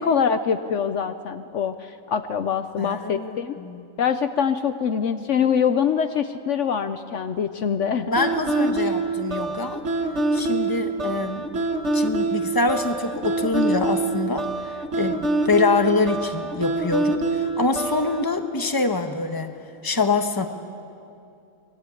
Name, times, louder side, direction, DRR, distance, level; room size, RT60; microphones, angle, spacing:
voice 1, 0.0-3.5 4.0-8.2, left 7 dB, 65° left, 9 dB, 1.0 m, -24 dB
voice 2, 2.8-3.9 8.1-9.8 10.3-11.5 11.9-19.6 19.8-20.5, left 3 dB, 15° left, 6 dB, 1.2 m, -25 dB
sound 1, 8.2-18.2, right 3 dB, 55° right, 1.6 m, -25 dB
24.5 x 20.5 x 8.5 m, 2.6 s
omnidirectional pair, 1.4 m